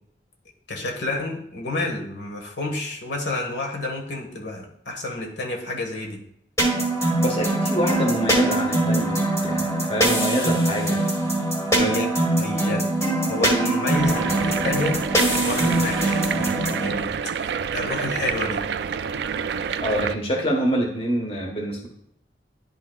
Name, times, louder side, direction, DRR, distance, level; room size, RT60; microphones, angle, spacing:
voice 1, 0.7-6.2 11.7-12.1 12.4-12.8 13.2-15.0 15.4-17.1 17.3-18.6, left 2 dB, 80° left, 1 dB, 1.4 m, -29 dB
sound 1, 6.6-16.9, right 1 dB, 15° left, 1.5 m, -22 dB
voice 2, 7.2-9.2 9.4-11.0 11.8-11.9 19.8-21.9, equal, 35° left, 1 dB, 1.2 m, -25 dB
sound 2, 13.9-20.1, right 6 dB, 65° right, 0.3 m, -28 dB
10.5 x 5.6 x 2.3 m, 0.71 s
head